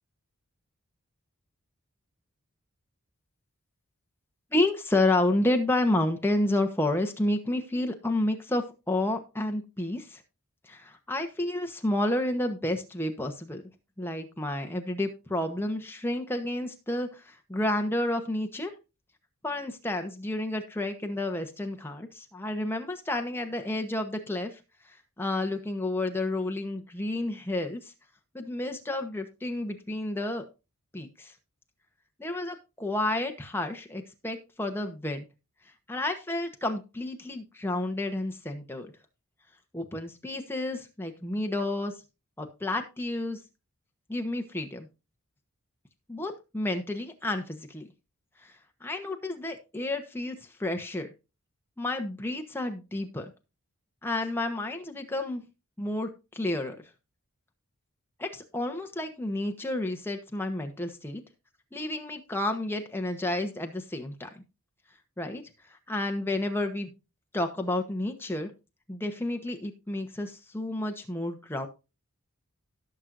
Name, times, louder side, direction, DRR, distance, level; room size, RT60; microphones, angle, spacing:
voice 1, 4.5-10.2 10.6-13.6 14.0-18.7 19.4-24.6 25.2-27.8 28.3-30.4 30.9-31.3 32.2-35.3 35.9-38.9 39.7-41.9 42.4-43.4 44.1-44.9 46.1-47.9 48.4-48.5 48.8-51.1 51.8-53.3 54.0-55.4 55.8-56.8 58.2-61.2 61.7-64.4 65.2-65.4 65.7-66.9 67.3-68.5 68.9-71.7, left 1 dB, 10° left, 5 dB, 1.0 m, -30 dB
17.5 x 6.2 x 2.6 m, 0.29 s
head